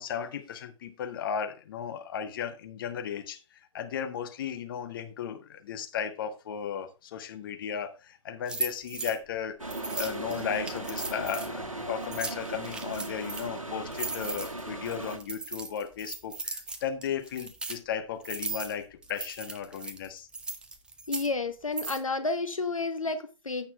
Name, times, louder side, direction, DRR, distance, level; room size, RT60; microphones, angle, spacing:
voice 1, 0.0-20.3, left 8 dB, 40° left, 1.1 m, -35 dB
sound 1, 8.5-9.2 9.7-11.5 12.0-13.5 13.9-17.8 18.2-18.7 19.0-21.3 21.8-22.0, right 3 dB, 5° right, 0.6 m, -37 dB
sound 2, 9.6-15.2, right 2 dB, 80° right, 1.4 m, -37 dB
voice 2, 21.1-23.7, left 3 dB, 80° left, 0.8 m, -31 dB
15.5 x 5.8 x 2.3 m
figure-of-eight pair, 125°, 17 cm